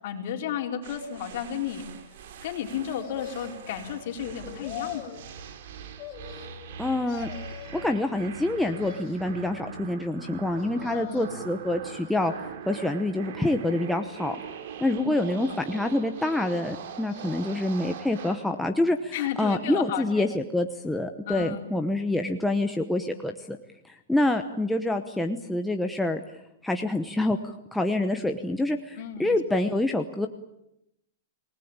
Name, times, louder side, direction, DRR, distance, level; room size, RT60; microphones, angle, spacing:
voice 1, 0.0-1.9 2.4-5.1 10.9-11.3 15.0-15.6 19.1-20.3 21.2-21.6 29.0-29.4, left 9 dB, 45° left, 3 dB, 4.4 m, -33 dB
sound 1, 0.8-18.5, right 7 dB, 55° right, 2.6 m, -42 dB
sound 2, 3.0-3.8 4.4-5.3 6.0-6.8 7.1-7.9 8.5-9.4 10.6-11.5 12.0-12.7 13.3-14.1 15.1-16.0 16.7-17.6 18.0-18.1, left 11 dB, 25° left, 4.2 m, -44 dB
voice 2, 6.8-7.3 7.7-12.3 12.7-14.4 14.8-23.6 23.8-26.2 26.6-30.3, left 1 dB, 5° left, 4 dB, 1.0 m, -27 dB
28.0 x 19.5 x 8.8 m, 0.82 s
supercardioid pair, 165°, 0 cm